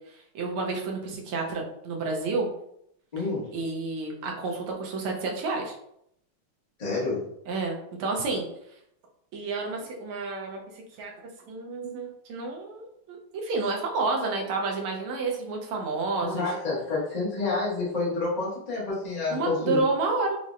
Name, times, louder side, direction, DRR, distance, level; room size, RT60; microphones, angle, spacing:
voice 1, 0.3-2.5 3.5-5.7 7.5-8.5 9.3-10.6 11.0-11.1 11.5-16.5 19.3-20.4, right 3 dB, 85° right, 0 dB, 1.6 m, -30 dB
voice 2, 3.1-3.5 6.8-7.2 16.2-19.8, left 3 dB, 40° left, -7 dB, 0.6 m, -29 dB
5.5 x 2.1 x 2.4 m, 0.75 s
omnidirectional pair, 2.4 m